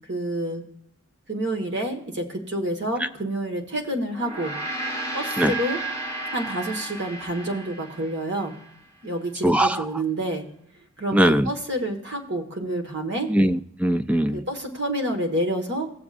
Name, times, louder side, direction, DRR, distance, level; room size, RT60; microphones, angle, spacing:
voice 1, 0.1-0.6 1.3-4.6 5.1-5.8 6.3-8.6 9.0-10.4 11.0-13.3 14.3-15.9, right 1 dB, 55° right, 3 dB, 1.5 m, -28 dB
Gong, 4.1-8.7, right 2 dB, 35° right, 3.8 m, -33 dB
voice 2, 9.4-9.8 11.1-11.5 13.3-14.4, right 1 dB, 5° right, 10 dB, 0.3 m, -20 dB
19.0 x 7.1 x 2.5 m, 0.72 s
head